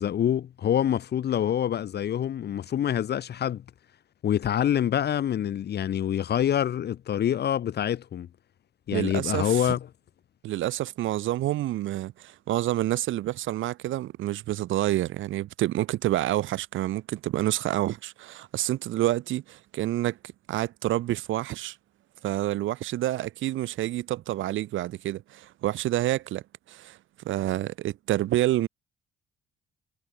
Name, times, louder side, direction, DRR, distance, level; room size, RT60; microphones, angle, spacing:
voice 1, 0.0-3.6 4.2-8.3 8.9-9.9, left 10 dB, 55° left, 0.9 m, -26 dB
voice 2, 8.9-9.6 10.4-20.2 20.5-21.8 22.2-27.0 27.2-28.7, right 14 dB, 80° right, 1.3 m, -28 dB
cardioid pair, 90°, 20 cm